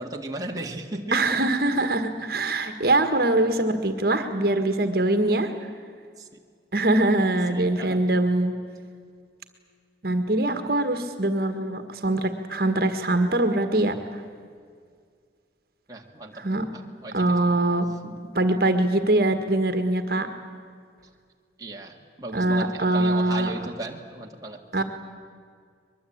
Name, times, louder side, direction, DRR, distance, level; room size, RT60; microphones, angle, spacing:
voice 1, 0.0-1.2 6.2-6.3 7.5-8.1 15.9-17.3 21.6-24.6, right 2 dB, 20° right, 0 dB, 1.8 m, -36 dB
voice 2, 1.1-5.5 6.7-8.6 10.0-14.2 16.4-16.7 17.1-17.9 18.4-20.3 22.3-23.5 24.7-24.8, right 2 dB, 55° right, 8 dB, 1.7 m, -23 dB
23.5 x 22.0 x 8.7 m, 2.1 s
head